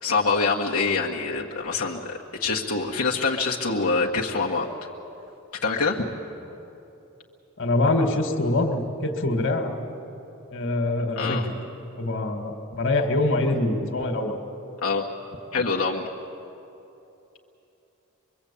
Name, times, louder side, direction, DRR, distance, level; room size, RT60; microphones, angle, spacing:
voice 1, 0.0-4.7 5.6-6.1 11.2-11.4 14.8-15.1 15.5-16.1, left 4 dB, 85° left, -4 dB, 1.6 m, -25 dB
voice 2, 7.6-9.7 10.5-11.5 12.0-14.4, left 2 dB, 60° left, 4 dB, 2.1 m, -24 dB
24.0 x 23.5 x 8.6 m, 3.0 s
head